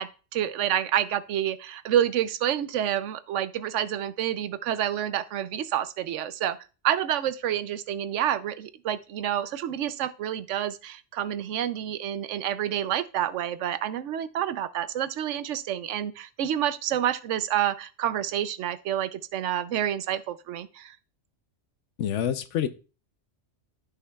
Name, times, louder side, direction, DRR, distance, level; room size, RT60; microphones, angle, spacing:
voice 1, 0.0-6.6 6.8-20.9, right 10 dB, 85° right, 0.9 m, -28 dB
voice 2, 22.0-22.7, left 9 dB, 85° left, 1.0 m, -27 dB
13.5 x 5.7 x 2.3 m
omnidirectional pair, 1.2 m